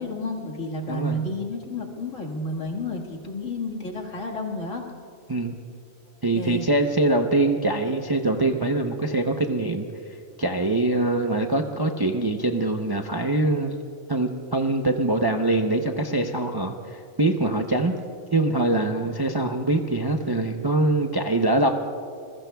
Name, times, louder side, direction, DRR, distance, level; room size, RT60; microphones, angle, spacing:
voice 1, 0.0-4.9 6.3-6.7 18.9-19.1, left 1 dB, 70° left, 0 dB, 2.2 m, -31 dB
voice 2, 0.9-1.2 5.3-5.5 6.2-9.9 10.4-13.7 14.1-17.9 18.3-21.7, right 2 dB, 25° right, 4 dB, 0.5 m, -23 dB
27.0 x 21.5 x 2.3 m, 2.4 s
omnidirectional pair, 1.4 m